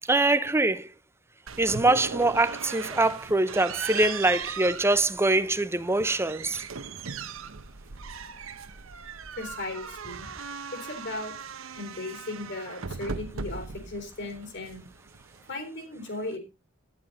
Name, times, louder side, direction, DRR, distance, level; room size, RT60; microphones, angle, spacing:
voice 1, 0.1-0.9 1.6-6.6, right 2 dB, 10° right, 0.6 m, -24 dB
sound 1, 1.5-15.5, right 5 dB, 85° right, 1.0 m, -39 dB
voice 2, 9.3-10.3 10.7-11.3 11.7-14.8 15.5-16.4, left 2 dB, 60° left, 3.8 m, -36 dB
12.5 x 10.5 x 4.0 m
head